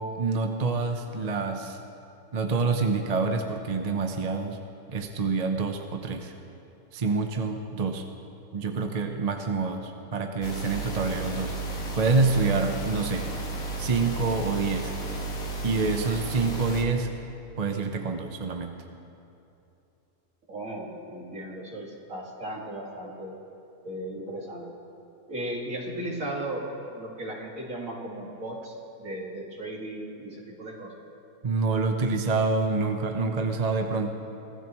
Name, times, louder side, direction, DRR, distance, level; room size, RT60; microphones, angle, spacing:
voice 1, 0.0-1.8 2.3-4.6 4.9-6.3 6.9-8.0 8.5-11.6 12.0-13.3 13.8-14.9 15.6-17.1 17.6-18.8 31.4-34.1, right 4 dB, 35° right, 5 dB, 0.7 m, -27 dB
sound 1, 10.4-16.8, right 2 dB, 60° left, 2.0 m, -33 dB
voice 2, 20.5-23.3 23.8-24.7 25.3-30.9, right 1 dB, 60° right, -2 dB, 2.6 m, -36 dB
24.0 x 15.5 x 3.1 m, 2.8 s
omnidirectional pair, 1.6 m